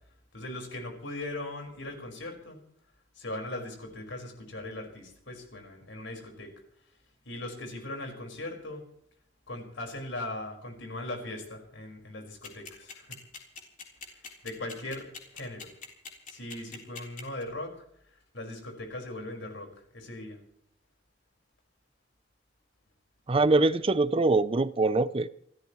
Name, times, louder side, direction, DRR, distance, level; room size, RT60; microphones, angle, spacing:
voice 1, 0.3-2.6 3.1-6.5 7.2-8.8 9.5-13.2 14.4-15.1 15.3-15.7 16.3-17.7 18.3-20.4, left 1 dB, 80° left, 5.1 m, -39 dB
sound 1, 12.4-17.4, left 4 dB, 45° left, 3.8 m, -42 dB
voice 2, 23.3-25.3, right 3 dB, 30° right, 0.5 m, -23 dB
28.5 x 13.5 x 3.1 m
head